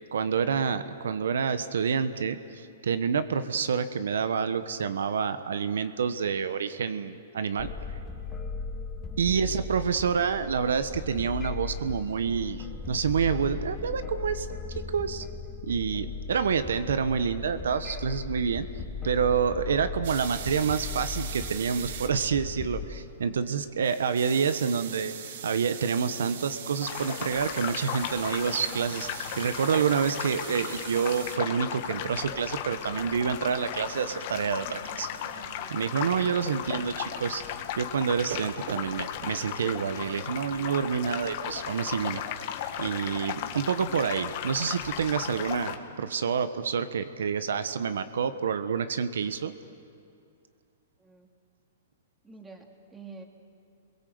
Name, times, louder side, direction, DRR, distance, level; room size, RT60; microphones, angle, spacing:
voice 1, 0.1-7.7 9.2-14.5 14.7-15.2 15.6-18.7 19.0-25.1 25.4-35.1 35.7-37.4 37.8-42.2 42.8-49.5, right 6 dB, 85° right, 11 dB, 1.1 m, -28 dB
sound 1, 7.6-22.8, left 4 dB, 15° left, 2.0 m, -37 dB
voice 2, 9.1-9.5 51.0-51.3 52.2-53.2, right 4 dB, 10° right, 2 dB, 2.5 m, -48 dB
sound 2, 20.0-39.6, right 8 dB, 65° right, 1.8 m, -43 dB
sound 3, 26.8-45.8, left 10 dB, 50° left, 1.8 m, -36 dB
29.5 x 22.5 x 7.9 m, 2.4 s
hypercardioid pair, 145°, 0 cm